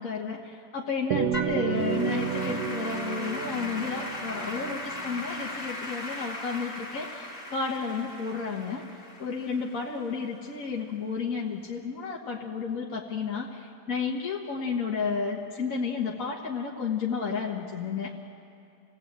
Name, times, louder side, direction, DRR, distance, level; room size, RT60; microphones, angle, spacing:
voice 1, 0.0-8.8 9.2-18.1, left 5 dB, 60° left, -3 dB, 2.0 m, -32 dB
sound 1, 1.1-5.7, right 8 dB, 80° right, 1.6 m, -31 dB
Applause / Keyboard (musical), 1.3-10.7, left 1 dB, 35° left, 2.6 m, -38 dB
28.0 x 18.0 x 8.9 m, 2.6 s
omnidirectional pair, 1.7 m